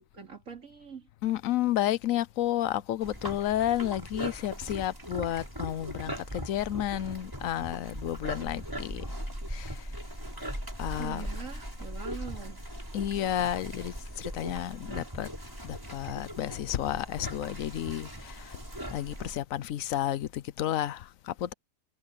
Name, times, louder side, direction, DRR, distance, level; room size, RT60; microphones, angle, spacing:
voice 1, 0.1-1.1 11.0-12.6, right 7 dB, 50° right, 3.5 m, -43 dB
voice 2, 1.2-9.0 9.5-9.8 10.8-11.3 12.9-15.3 15.6-18.6 18.9-21.5, left 12 dB, 65° left, 0.9 m, -31 dB
sound 1, 3.0-19.4, equal, 10° right, 6.8 m, -39 dB
omnidirectional pair, 1.8 m